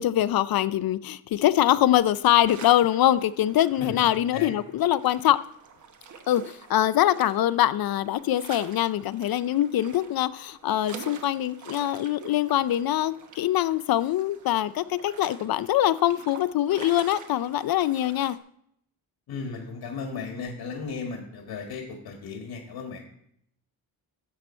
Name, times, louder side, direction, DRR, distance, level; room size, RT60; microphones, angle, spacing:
voice 1, 0.0-5.4 6.3-18.4, left 13 dB, 70° left, 14 dB, 0.5 m, -23 dB
sound 1, 2.4-18.4, right 5 dB, 50° right, 1.2 m, -47 dB
voice 2, 3.8-4.5 19.3-23.0, left 4 dB, 90° left, 2 dB, 1.8 m, -35 dB
13.0 x 7.5 x 4.4 m, 0.72 s
wide cardioid pair, 155°, 38 cm